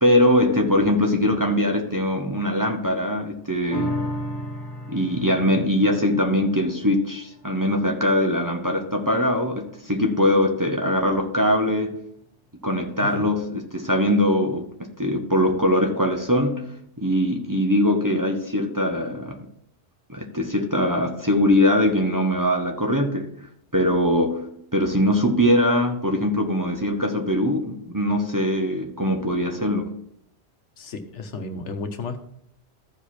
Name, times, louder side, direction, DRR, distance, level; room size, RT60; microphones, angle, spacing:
voice 1, 0.0-4.1 4.9-12.0 12.6-16.7 17.0-19.4 20.1-23.3 23.7-29.9, left 1 dB, 20° right, 2 dB, 0.8 m, -22 dB
sound 1, 3.7-10.4 10.8-10.9, equal, 30° left, 1.3 m, -35 dB
voice 2, 13.0-13.3 30.8-32.2, left 3 dB, 80° left, 7 dB, 1.3 m, -33 dB
14.0 x 4.9 x 4.3 m, 0.73 s
omnidirectional pair, 1.2 m